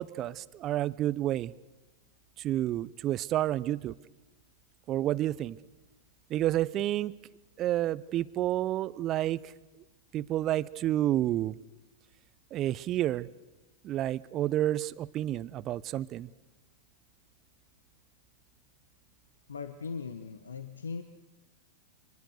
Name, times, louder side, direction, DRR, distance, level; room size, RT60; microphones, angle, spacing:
voice 1, 0.0-1.5 2.4-4.0 4.9-5.6 6.3-7.1 7.6-9.5 10.1-11.6 12.5-13.3 13.8-16.3, right 13 dB, 35° right, 19 dB, 0.7 m, -30 dB
voice 2, 19.5-21.0, left 5 dB, 80° left, 9 dB, 1.1 m, -39 dB
24.5 x 20.5 x 6.6 m, 1.1 s
hypercardioid pair, 95°, 0 cm